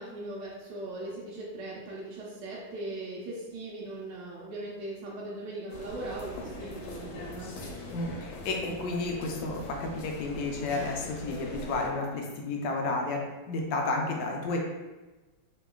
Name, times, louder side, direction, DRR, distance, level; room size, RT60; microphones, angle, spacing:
voice 1, 0.0-7.5, right 2 dB, 75° right, -5 dB, 1.2 m, -39 dB
sound 1, 5.7-11.9, left 1 dB, 90° left, 1.4 m, -41 dB
voice 2, 7.9-13.2 13.5-14.6, left 3 dB, 75° left, 0 dB, 1.0 m, -31 dB
3.0 x 2.8 x 2.3 m, 1.2 s
omnidirectional pair, 2.1 m